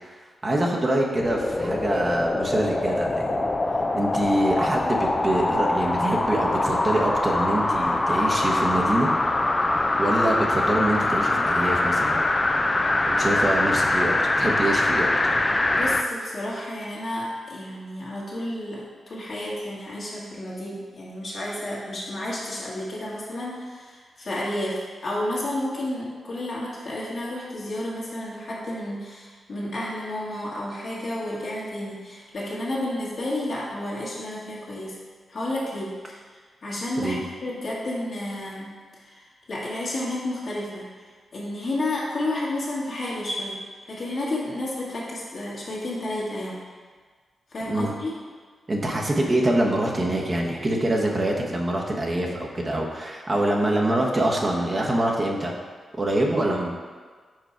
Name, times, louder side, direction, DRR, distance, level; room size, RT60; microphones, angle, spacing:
voice 1, 0.4-3.4 3.9-9.1 10.0-12.2 13.0-15.1 37.0-37.2 47.7-47.9 48.7-55.5 56.0-56.7, right 1 dB, 40° right, -1 dB, 1.1 m, -25 dB
sound 1, 1.1-16.1 16.5-16.6, left 2 dB, 35° left, 0.5 m, -23 dB
voice 2, 15.7-35.0 35.3-36.2 36.6-38.7 39.1-39.2 39.5-40.9 41.3-46.6 47.5-48.1, left 1 dB, 60° left, -6 dB, 1.7 m, -31 dB
4.8 x 4.6 x 4.5 m, 1.5 s
supercardioid pair, 40°, 0 cm